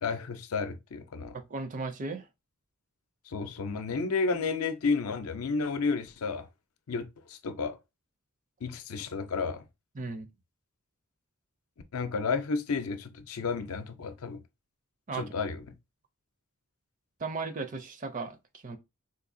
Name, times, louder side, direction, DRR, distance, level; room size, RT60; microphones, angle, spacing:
voice 1, 0.0-1.4 3.3-6.5 6.9-7.8 8.6-9.6 11.9-14.4 15.1-15.6, left 4 dB, 80° left, 0.5 m, -31 dB
voice 2, 1.3-2.3 10.0-10.3 15.1-15.2 17.2-18.8, right 3 dB, 35° right, 0.5 m, -36 dB
3.9 x 2.7 x 2.5 m
head